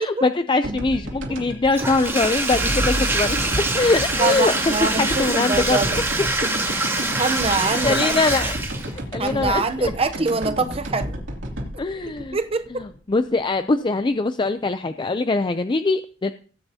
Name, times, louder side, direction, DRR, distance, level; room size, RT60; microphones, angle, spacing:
voice 1, 0.0-4.5 5.0-6.5 7.5-7.6 7.8-8.6 8.9-9.9 11.8-12.4 12.8-16.3, left 3 dB, 25° left, 0.4 m, -23 dB
sound 1, 0.6-13.4, right 1 dB, 80° right, 2.7 m, -32 dB
Bathtub (filling or washing), 1.7-9.0, right 2 dB, 15° right, 2.1 m, -25 dB
Boom, 2.5-6.9, equal, 60° right, 2.0 m, -33 dB
voice 2, 4.2-6.0 7.2-8.2 9.2-11.2 12.1-12.9, right 3 dB, 30° right, 0.7 m, -24 dB
18.0 x 9.1 x 2.8 m
head